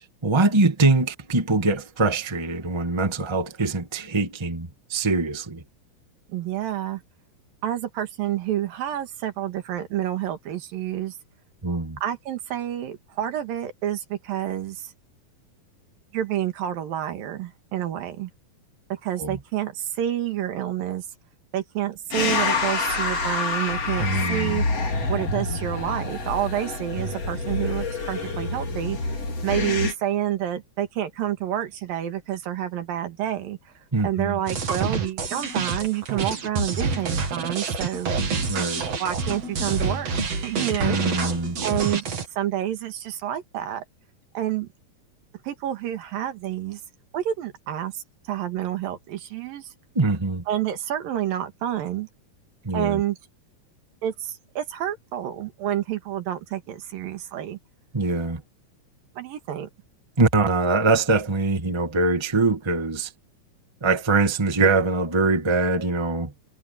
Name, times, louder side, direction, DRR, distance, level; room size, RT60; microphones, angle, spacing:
voice 1, 0.2-5.6 11.6-12.0 19.2-19.4 24.0-24.6 33.9-34.4 38.5-38.9 40.8-41.6 49.9-50.4 52.6-53.0 57.9-58.4 60.2-63.1 63.8-66.3, right 3 dB, 15° right, 1.2 m, -23 dB
voice 2, 6.3-7.0 7.6-11.1 12.0-14.9 16.1-18.3 19.0-21.0 21.5-24.7 25.1-33.6 34.0-38.1 38.6-38.7 39.0-40.2 40.4-41.0 41.6-42.1 42.4-43.8 44.4-44.7 45.4-46.8 47.1-49.6 50.5-52.1 52.7-53.2 54.0-57.6 59.2-59.7, right 11 dB, 80° right, 3.5 m, -28 dB
sound 1, 22.1-29.9, left 3 dB, 45° left, 4.7 m, -27 dB
sound 2, 34.5-42.3, right 4 dB, 50° right, 3.6 m, -27 dB
omnidirectional pair, 4.0 m